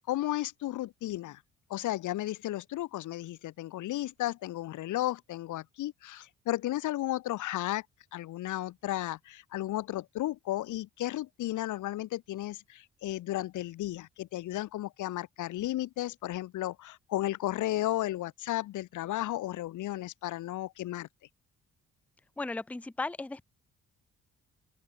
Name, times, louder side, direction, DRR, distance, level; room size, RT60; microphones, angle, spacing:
voice 1, 0.1-1.4 1.7-7.8 8.1-21.1, left 15 dB, 80° left, 1.2 m, -34 dB
voice 2, 22.4-23.4, left 3 dB, 5° left, 0.6 m, -35 dB
open air
cardioid pair, 90°, 30 cm